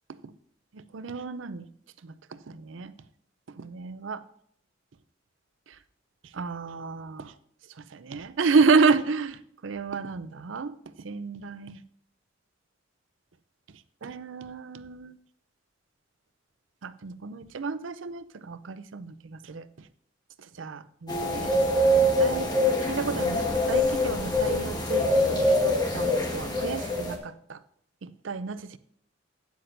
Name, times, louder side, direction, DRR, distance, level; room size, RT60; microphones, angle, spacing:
voice 1, 0.7-1.6 2.0-2.1 2.5-2.9 3.6-4.2 6.3-7.3 7.9-10.7 11.0-11.8 14.0-15.2 16.8-19.6 20.6-21.5 21.9-22.5 22.8-27.6 28.0-28.8, right 4 dB, 80° right, 0.5 m, -30 dB
sound 1, 21.1-27.2, left 1 dB, 20° left, 1.5 m, -24 dB
12.0 x 9.4 x 2.7 m
head